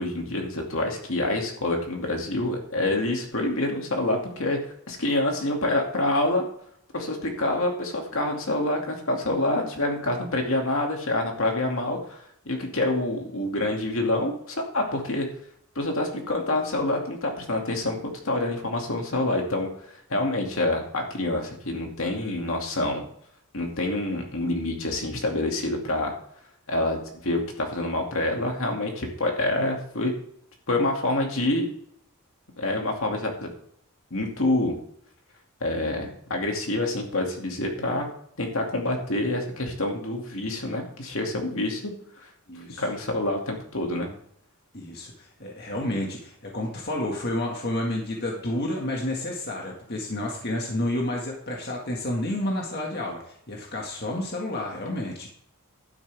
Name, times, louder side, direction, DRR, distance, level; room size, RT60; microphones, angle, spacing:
voice 1, 0.0-4.6 4.9-6.4 6.9-15.3 15.8-19.7 20.1-23.0 23.5-26.1 26.7-30.1 30.7-31.7 32.6-33.5 34.1-34.7 35.6-38.1 38.4-41.9 42.8-44.1, left 2 dB, 65° left, 1 dB, 2.4 m, -27 dB
voice 2, 42.5-42.8 44.7-55.3, left 1 dB, 45° left, -1 dB, 1.9 m, -30 dB
12.0 x 9.9 x 3.5 m, 0.67 s
head